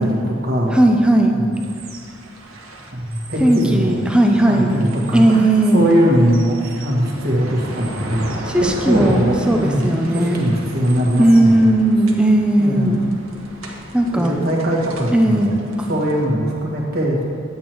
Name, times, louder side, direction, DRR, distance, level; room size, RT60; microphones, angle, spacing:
voice 1, 0.0-0.8 1.3-1.4 2.9-4.0 4.5-8.2 8.8-11.8 12.6-12.9 14.1-15.5 15.9-17.2, equal, 50° right, -3 dB, 1.6 m, -20 dB
voice 2, 0.7-1.3 3.4-4.7 5.1-5.8 8.5-10.4 11.2-13.0 13.9-14.4 15.1-15.5 15.8-15.9, right 1 dB, 5° right, 2 dB, 0.6 m, -16 dB
sound 1, 1.5-16.3, right 1 dB, 85° right, 1.1 m, -35 dB
10.5 x 8.4 x 3.1 m, 2.4 s
head